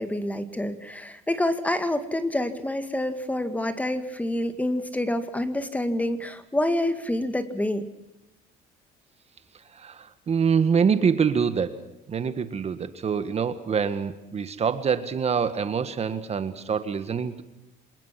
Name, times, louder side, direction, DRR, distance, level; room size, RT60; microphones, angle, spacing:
voice 1, 0.0-7.8, left 1 dB, 10° left, 10 dB, 2.1 m, -27 dB
voice 2, 9.7-11.8 12.1-17.4, right 6 dB, 40° right, 11 dB, 1.7 m, -25 dB
26.0 x 20.0 x 6.0 m, 0.92 s
cardioid pair, 110°, 17 cm